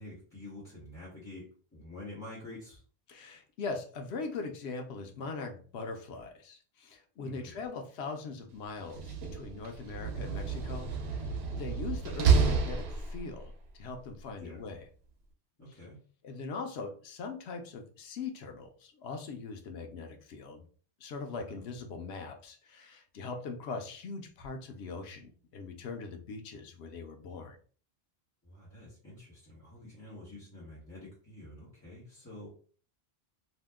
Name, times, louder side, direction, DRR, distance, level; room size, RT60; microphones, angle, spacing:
voice 1, 0.0-2.8 7.2-7.5 14.4-14.6 15.6-16.0 21.5-21.6 28.4-32.5, left 1 dB, 15° left, -8 dB, 1.0 m, -48 dB
voice 2, 3.1-14.8 16.2-20.6 21.0-27.6, left 4 dB, 85° left, 4 dB, 0.9 m, -41 dB
Slam, 8.8-13.5, right 5 dB, 80° right, 0.8 m, -30 dB
2.7 x 2.1 x 3.4 m, 0.41 s
omnidirectional pair, 1.1 m